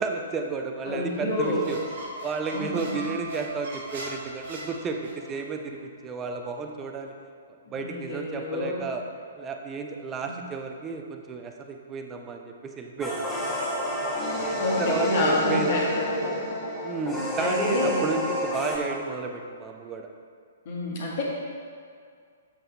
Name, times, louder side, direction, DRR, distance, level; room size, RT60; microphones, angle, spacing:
voice 1, 0.0-1.8 2.2-7.1 7.7-9.0 9.4-13.5 14.4-15.7 16.8-20.1, right 4 dB, 20° right, 3 dB, 0.7 m, -32 dB
voice 2, 0.8-1.7 2.5-3.1 7.7-8.8 10.2-10.4 14.2-16.5 17.4-18.0 20.7-21.2, left 1 dB, 45° left, -4 dB, 2.0 m, -29 dB
Squeak, 1.3-5.4, right 1 dB, 55° right, 1.7 m, -39 dB
sound 1, 13.0-18.8, left 1 dB, 5° left, 1.9 m, -29 dB
7.6 x 7.3 x 3.4 m, 2.2 s
figure-of-eight pair, 115°, 0 cm